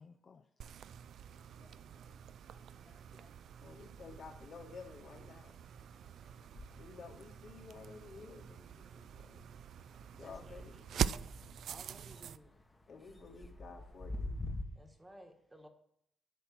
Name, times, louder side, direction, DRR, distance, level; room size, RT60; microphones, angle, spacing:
voice 1, 0.0-3.8, left 5 dB, 40° left, 0.6 m, -65 dB
sound 1, 0.6-12.4, right 9 dB, 70° right, 0.4 m, -44 dB
sound 2, 1.4-2.6 2.9-14.6, left 2 dB, 15° left, 1.2 m, -50 dB
voice 2, 3.6-5.6 6.8-9.5 10.2-11.2 12.9-14.4, left 4 dB, 60° left, 2.7 m, -52 dB
voice 3, 10.2-10.8 11.6-12.6 14.7-15.7, right 1 dB, 10° right, 1.4 m, -57 dB
10.5 x 6.1 x 8.5 m
cardioid pair, 140°, 0 cm